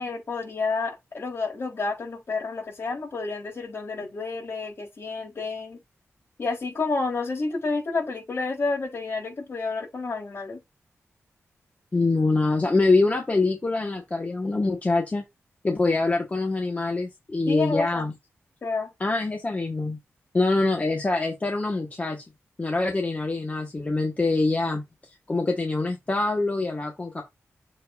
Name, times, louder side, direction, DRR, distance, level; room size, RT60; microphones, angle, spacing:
voice 1, 0.0-5.8 6.4-10.6 17.5-18.0 18.6-18.9, left 3 dB, 55° left, 4.1 m, -30 dB
voice 2, 11.9-15.2 15.6-18.1 19.0-20.0 20.3-22.2 22.6-24.8 25.3-27.2, left 3 dB, 30° left, 1.6 m, -24 dB
7.4 x 4.8 x 2.7 m
wide cardioid pair, 95°, 5 cm